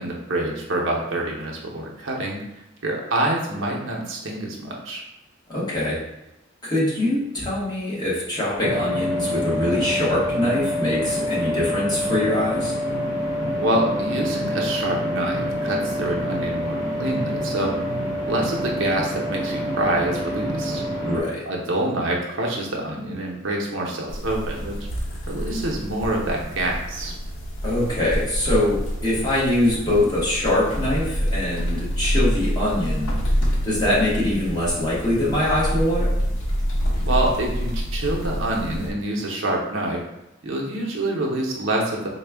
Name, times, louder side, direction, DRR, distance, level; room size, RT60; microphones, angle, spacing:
voice 1, 0.0-5.0 13.6-17.8 18.3-20.8 21.5-24.8 25.3-27.1 37.1-40.0 40.4-42.1, right 1 dB, 75° right, -1 dB, 0.7 m, -26 dB
voice 2, 5.5-6.0 6.6-12.7 21.0-21.4 27.6-33.1 33.6-36.1, left 1 dB, 20° left, -8 dB, 1.3 m, -23 dB
sound 1, 8.6-21.2, equal, 40° left, 1.2 m, -26 dB
sound 2, 24.1-38.9, equal, 85° left, 0.7 m, -27 dB
4.2 x 2.3 x 3.4 m, 0.91 s
head